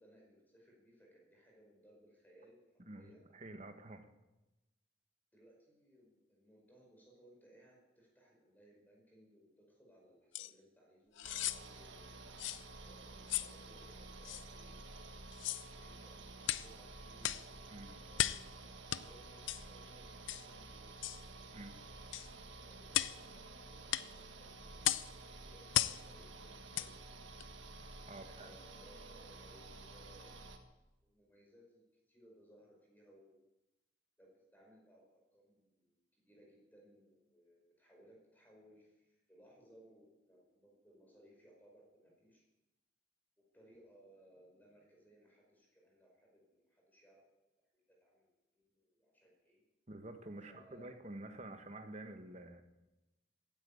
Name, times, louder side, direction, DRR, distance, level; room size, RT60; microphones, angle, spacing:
voice 1, 0.0-3.2 5.3-12.2 12.7-14.8 15.6-18.3 18.6-21.0 22.7-27.0 28.2-30.3 31.0-31.8 32.1-33.5 34.2-42.4 43.5-47.2 47.7-49.6 50.5-51.0, right 1 dB, 10° left, -2 dB, 5.2 m, -64 dB
voice 2, 2.8-4.1 17.7-17.9 21.5-21.8 28.1-28.6 49.9-52.6, right 1 dB, 35° right, 7 dB, 1.4 m, -49 dB
sound 1, 10.3-10.5 11.2-11.6 12.4-12.6 13.3-13.5 14.3-14.4 15.3-15.7 16.4-16.7 17.2-17.5 18.2-18.5 18.9-19.0 19.5-19.6 20.3-20.5 21.0-21.2 22.1-22.3 22.9-23.2 23.9-24.1 24.8-25.1 25.7-26.0 26.7-26.9 27.4-27.5, left 13 dB, 80° left, 0.6 m, -35 dB
sound 2, 11.2-30.6, right 2 dB, 75° right, 1.7 m, -52 dB
15.5 x 10.5 x 8.7 m, 1.0 s
head